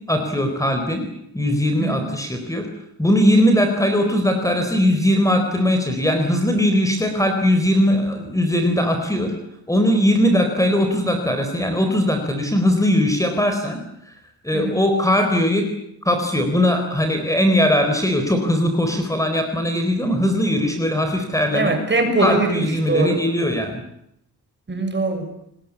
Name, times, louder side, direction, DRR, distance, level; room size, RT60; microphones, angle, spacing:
voice 1, 0.1-1.1 1.3-2.7 3.0-9.3 9.7-13.8 14.4-15.7 16.0-21.8 22.2-23.8, equal, 10° left, 5 dB, 4.1 m, -19 dB
voice 2, 21.5-23.2 24.7-25.3, right 2 dB, 25° right, 7 dB, 6.6 m, -22 dB
29.0 x 20.5 x 8.5 m, 0.78 s
cardioid pair, 125°, 40 cm